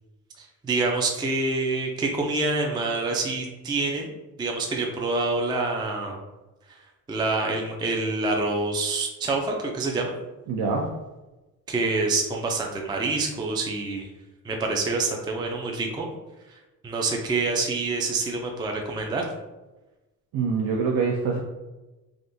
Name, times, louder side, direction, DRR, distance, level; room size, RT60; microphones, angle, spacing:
voice 1, 0.4-4.1 4.4-6.2 7.1-10.1 11.7-14.1 14.4-16.1 16.5-19.2, right 3 dB, 10° right, 1 dB, 0.4 m, -26 dB
voice 2, 10.5-10.9 20.3-21.4, right 5 dB, 65° right, -1 dB, 0.6 m, -24 dB
3.5 x 2.5 x 2.6 m, 1.1 s
cardioid pair, 100°, 38 cm